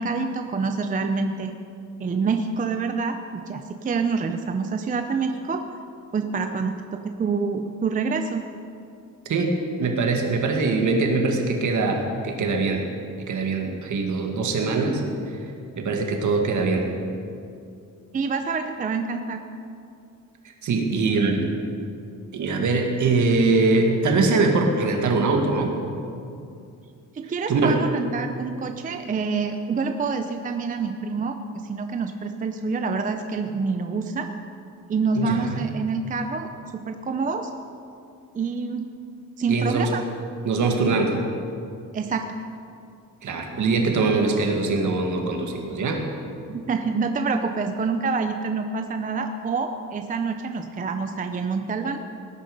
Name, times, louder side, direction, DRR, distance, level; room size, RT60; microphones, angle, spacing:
voice 1, 0.0-1.5 2.0-5.6 6.1-8.5 18.1-19.4 27.1-31.4 31.6-34.3 34.9-37.5 38.3-38.9 39.4-40.0 41.9-42.2 46.5-52.0, right 4 dB, 25° right, 6 dB, 0.5 m, -27 dB
voice 2, 9.3-12.8 13.3-15.0 15.3-15.4 15.8-16.9 20.6-21.5 22.3-25.7 27.5-27.8 35.2-35.6 39.5-39.9 40.4-41.2 43.2-46.0, right 3 dB, 60° right, 3 dB, 1.9 m, -22 dB
18.5 x 10.5 x 5.3 m, 2.5 s
wide cardioid pair, 180°, 34 cm